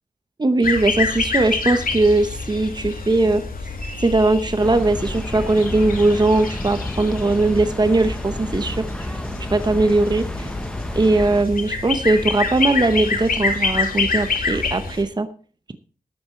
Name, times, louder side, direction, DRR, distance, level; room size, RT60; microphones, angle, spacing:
voice 1, 0.4-3.4 4.0-8.9 9.5-10.5 10.9-15.3, right 2 dB, 30° right, 10 dB, 0.9 m, -19 dB
sound 1, 0.6-15.0, left 4 dB, 80° left, 2.5 m, -27 dB
sound 2, 4.6-11.4, left 1 dB, 5° left, 0.9 m, -31 dB
12.5 x 11.0 x 4.4 m, 0.40 s
wide cardioid pair, 95°, 15 cm